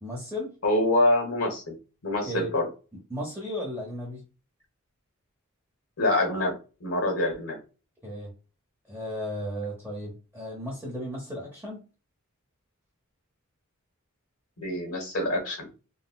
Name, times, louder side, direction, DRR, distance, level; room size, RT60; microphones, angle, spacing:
voice 1, 0.0-0.5 2.2-2.5 3.1-4.2 8.0-8.3 8.9-11.8, equal, 10° right, -4 dB, 0.8 m, -35 dB
voice 2, 0.6-1.7 2.0-2.6 6.0-6.5 6.8-7.6 14.6-15.7, left 1 dB, 75° left, 2 dB, 1.3 m, -25 dB
3.9 x 2.1 x 2.3 m, 0.33 s
head